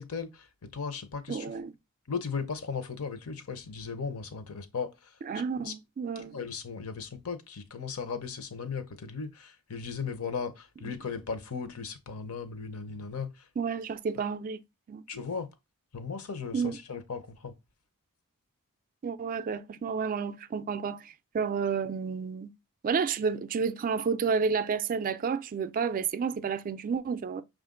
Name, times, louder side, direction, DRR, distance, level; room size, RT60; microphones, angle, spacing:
voice 1, 0.0-1.5 2.1-4.9 5.6-5.7 6.2-13.3 15.1-15.5 15.9-17.5, left 5 dB, 70° left, 0.7 m, -37 dB
voice 2, 1.3-1.7 5.2-6.4 10.8-10.9 13.6-14.6 14.9-15.0 16.5-16.8 19.0-22.5 22.8-27.4, right 6 dB, 40° right, 0.3 m, -31 dB
5.8 x 2.5 x 3.7 m
head